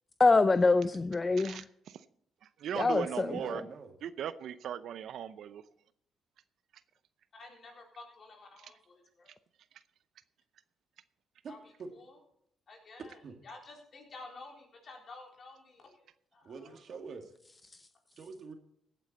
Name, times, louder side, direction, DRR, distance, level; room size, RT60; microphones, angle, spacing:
voice 1, 0.2-1.6 2.8-3.6, left 3 dB, 25° left, 0.5 m, -25 dB
voice 2, 1.4-2.0 2.6-3.6 4.0-5.6, right 9 dB, 70° right, 0.6 m, -38 dB
voice 3, 2.6-3.9 11.4-11.5 11.8-11.9 13.2-13.4 16.4-17.3 18.2-18.5, right 5 dB, 55° right, 2.0 m, -45 dB
voice 4, 7.3-9.3 11.5-12.2 12.7-16.1 16.3-17.0, left 3 dB, 50° left, 3.9 m, -52 dB
16.0 x 8.8 x 4.2 m
cardioid pair, 90°, 0 cm